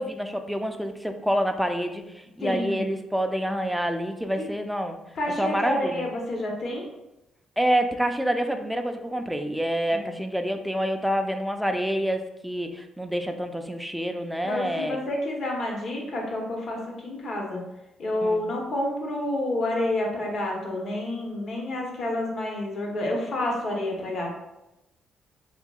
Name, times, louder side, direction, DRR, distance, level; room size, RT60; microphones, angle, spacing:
voice 1, 0.0-2.0 2.4-5.0 5.4-6.0 7.6-15.0 18.2-18.4, equal, ahead, 6 dB, 0.3 m, -27 dB
voice 2, 2.4-2.8 4.4-4.5 5.1-6.9 9.9-10.1 14.4-17.6 18.0-24.3, left 1 dB, 55° left, -1 dB, 0.9 m, -29 dB
3.6 x 2.7 x 2.3 m, 0.93 s
cardioid pair, 90°, 0 cm